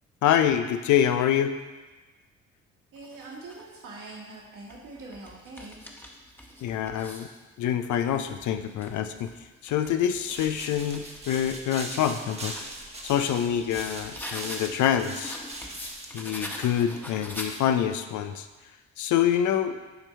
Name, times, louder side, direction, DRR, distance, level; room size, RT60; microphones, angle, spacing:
voice 1, 0.2-1.5 6.6-7.3 7.6-9.3 9.6-12.5 13.0-15.4 16.1-18.5 19.0-19.8, left 9 dB, 55° left, 9 dB, 0.6 m, -26 dB
voice 2, 2.9-5.8, right 2 dB, 60° right, -5 dB, 2.2 m, -43 dB
sound 1, 3.0-3.7 4.4-7.4 7.8-11.3 11.7-14.8 15.2-18.0, left 1 dB, 5° left, 1.2 m, -43 dB
sound 2, 10.3-16.3, right 1 dB, 15° right, 1.2 m, -40 dB
10.5 x 4.4 x 3.3 m, 1.2 s
hypercardioid pair, 45°, 37 cm